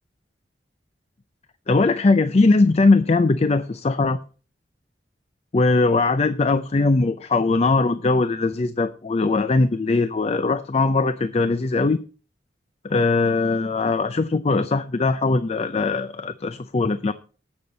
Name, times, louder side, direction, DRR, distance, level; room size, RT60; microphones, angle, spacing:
voice 1, 1.7-4.2 5.5-12.0 12.8-17.1, left 3 dB, 35° left, 0.5 m, -20 dB
17.0 x 6.9 x 4.0 m
head